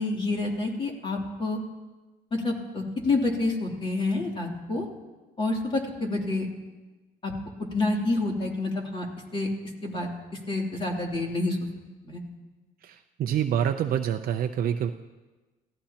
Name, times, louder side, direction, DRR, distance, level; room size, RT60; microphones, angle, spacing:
voice 1, 0.0-1.6 2.3-4.9 5.4-6.5 7.2-7.3 7.7-9.0 9.3-9.5 9.8-10.1 10.5-11.6 12.0-12.2, left 2 dB, 30° left, 0 dB, 3.1 m, -28 dB
voice 2, 12.8-14.9, right 9 dB, 60° right, 5 dB, 0.7 m, -27 dB
28.5 x 16.0 x 2.9 m, 1.2 s
cardioid pair, 110°, 17 cm